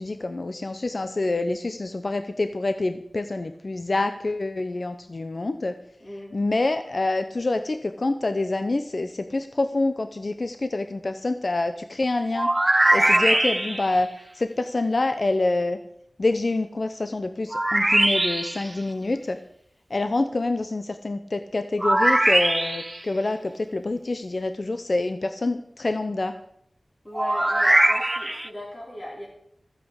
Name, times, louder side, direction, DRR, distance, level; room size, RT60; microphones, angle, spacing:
voice 1, 0.0-5.8 6.3-12.5 12.9-14.1 14.3-15.8 16.2-19.4 19.9-26.4, left 2 dB, 55° left, 9 dB, 0.8 m, -26 dB
voice 2, 6.0-6.3 13.1-13.4 27.0-29.3, left 1 dB, 30° left, -4 dB, 3.6 m, -38 dB
sound 1, 12.3-14.0 17.5-18.7 21.8-23.0 27.1-28.5, right 1 dB, 25° right, 0.6 m, -21 dB
14.0 x 7.7 x 8.2 m, 0.73 s
wide cardioid pair, 60°, 0 cm